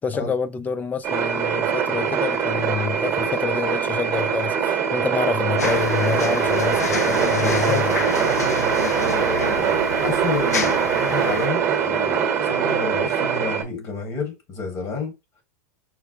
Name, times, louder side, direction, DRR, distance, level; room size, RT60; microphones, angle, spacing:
voice 1, 0.0-8.0, left 6 dB, 20° left, 0.4 m, -27 dB
sound 1, 1.0-13.6, right 7 dB, 35° right, 1.1 m, -22 dB
sound 2, 5.6-11.5, left 4 dB, 85° left, 0.6 m, -28 dB
voice 2, 7.3-15.1, left 4 dB, 45° left, 1.8 m, -30 dB
5.7 x 2.1 x 2.8 m
hypercardioid pair, 95°, 8 cm